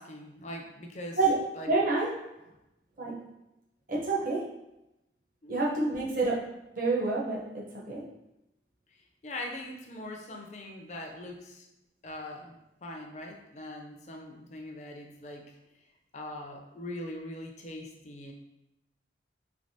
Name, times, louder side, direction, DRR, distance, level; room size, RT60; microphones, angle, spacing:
voice 1, 0.0-1.2 1.5-1.7 5.4-5.8 9.2-11.7 12.0-15.5 16.1-18.3, left 1 dB, 40° left, 1 dB, 0.4 m, -42 dB
voice 2, 1.7-2.1 3.0-3.1 3.9-4.4 5.5-6.4 6.8-8.0, right 3 dB, 45° right, -3 dB, 0.7 m, -28 dB
3.3 x 3.3 x 2.7 m, 0.91 s
head